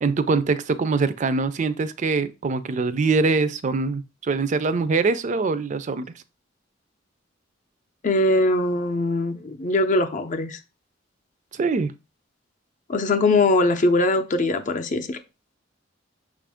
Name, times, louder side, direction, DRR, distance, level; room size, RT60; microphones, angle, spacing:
voice 1, 0.0-6.1 11.5-11.9, right 4 dB, 40° right, 0.4 m, -23 dB
voice 2, 8.0-10.6 12.9-15.2, left 2 dB, 40° left, 0.5 m, -21 dB
6.1 x 2.5 x 3.5 m
head